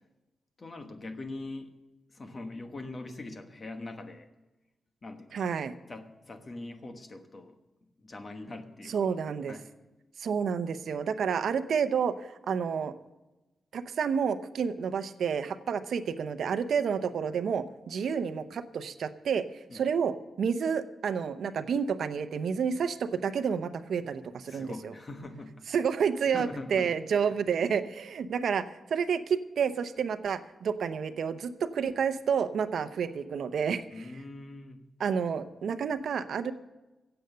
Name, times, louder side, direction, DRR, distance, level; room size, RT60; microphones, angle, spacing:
voice 1, 0.6-1.7 2.1-4.3 5.0-5.4 5.9-7.6 8.0-9.2 9.5-9.7 19.7-19.8 24.4-25.7 26.3-27.3 33.9-34.8, left 2 dB, 30° left, 7 dB, 1.2 m, -42 dB
voice 2, 5.3-5.7 8.9-9.5 10.2-12.9 13.7-19.4 19.7-24.9 25.7-34.0 35.0-36.5, right 6 dB, 70° right, 11 dB, 0.7 m, -30 dB
16.0 x 7.9 x 6.7 m, 1.1 s
wide cardioid pair, 160°, 0 cm